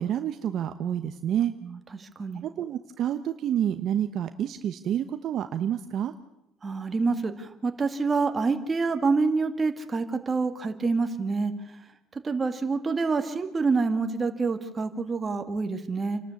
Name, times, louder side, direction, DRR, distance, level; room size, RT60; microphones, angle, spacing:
voice 1, 0.0-1.5 2.4-6.1, right 10 dB, 50° right, 9 dB, 0.9 m, -28 dB
voice 2, 1.6-2.5 6.6-11.5 12.2-16.2, right 4 dB, 25° right, 7 dB, 2.0 m, -27 dB
28.5 x 12.5 x 8.3 m, 0.88 s
cardioid pair, 120°, 0 cm